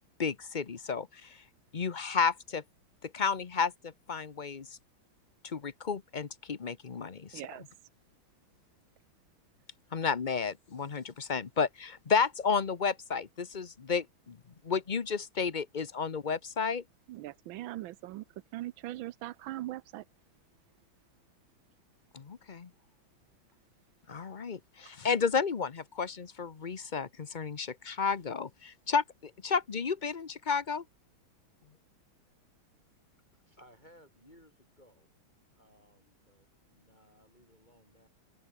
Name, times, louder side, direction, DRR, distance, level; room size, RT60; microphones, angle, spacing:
voice 1, 0.2-1.4 1.7-2.6 3.0-4.8 5.4-7.7 9.9-14.4 14.6-16.8 22.1-22.7 24.1-30.8, left 5 dB, 45° left, 0.6 m, -32 dB
voice 2, 7.3-7.6 17.1-18.2 18.5-20.0, right 15 dB, 75° right, 1.4 m, -40 dB
voice 3, 33.4-35.1 35.5-38.1, equal, 20° left, 7.8 m, -61 dB
omnidirectional pair, 2.2 m